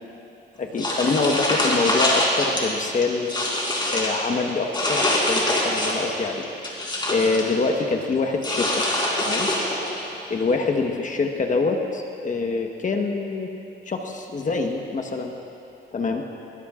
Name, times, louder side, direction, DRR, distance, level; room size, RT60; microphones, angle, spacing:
voice 1, 0.6-3.3 3.9-6.4 7.1-8.8 9.2-9.5 10.3-13.5 13.9-15.3 15.9-16.2, left 4 dB, 40° left, 3 dB, 1.2 m, -25 dB
sound 1, 0.8-2.6 3.0-4.2 4.7-6.1 6.4-7.5 8.4-9.9, left 1 dB, 25° left, 4.0 m, -24 dB
21.5 x 20.5 x 2.5 m, 2.9 s
cardioid pair, 90°, 20 cm